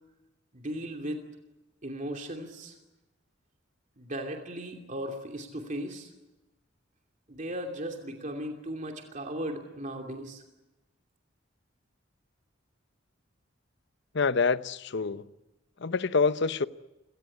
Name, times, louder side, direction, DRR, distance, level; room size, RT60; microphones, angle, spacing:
voice 1, 0.5-1.3 1.8-2.8 4.0-6.1 7.3-10.4, right 1 dB, 40° right, 2.8 m, -37 dB
voice 2, 14.1-15.3 15.8-16.7, left 4 dB, 60° left, 0.8 m, -26 dB
29.0 x 18.0 x 9.8 m
head